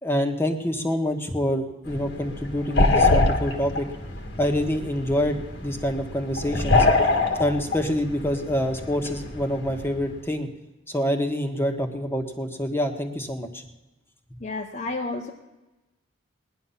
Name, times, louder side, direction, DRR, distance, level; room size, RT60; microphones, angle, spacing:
voice 1, 0.0-3.9 4.4-6.9 7.4-10.5 10.9-13.6, equal, 15° left, 3 dB, 1.4 m, -26 dB
sound 1, 1.8-10.2, left 3 dB, 65° left, 1.7 m, -25 dB
voice 2, 14.4-15.3, left 3 dB, 40° left, 0 dB, 1.0 m, -31 dB
18.5 x 11.0 x 5.7 m, 1.1 s
head